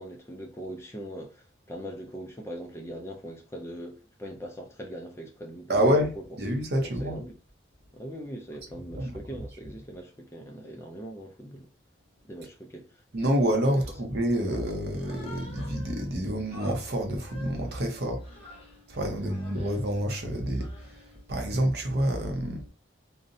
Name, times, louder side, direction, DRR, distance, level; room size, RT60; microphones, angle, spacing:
voice 1, 0.0-5.8 6.2-6.3 6.8-7.4 7.9-11.7 12.2-13.0 13.7-13.8 19.2-19.3, equal, 15° left, 0.3 m, -41 dB
voice 2, 5.7-7.2 8.9-9.1 13.1-22.7, equal, 55° right, 0.6 m, -28 dB
Human voice, 14.9-16.1 16.5-18.8 19.2-19.8 20.4-21.2, left 1 dB, 30° left, 0.8 m, -49 dB
2.5 x 2.0 x 2.6 m
head